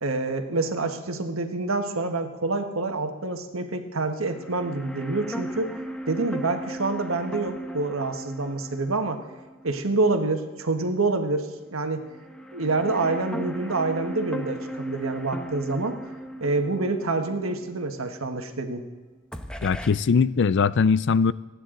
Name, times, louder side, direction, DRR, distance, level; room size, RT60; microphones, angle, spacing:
voice 1, 0.0-5.7 6.1-9.2 9.6-12.1 12.5-16.0 16.4-18.8, right 3 dB, 85° right, 6 dB, 1.4 m, -27 dB
sound 1, 4.3-10.5 10.8-10.9 12.0-18.9 19.3-19.9, right 1 dB, 5° left, 1.0 m, -37 dB
voice 2, 19.6-21.3, left 5 dB, 60° left, 18 dB, 0.4 m, -21 dB
29.5 x 9.9 x 3.9 m, 1.3 s
head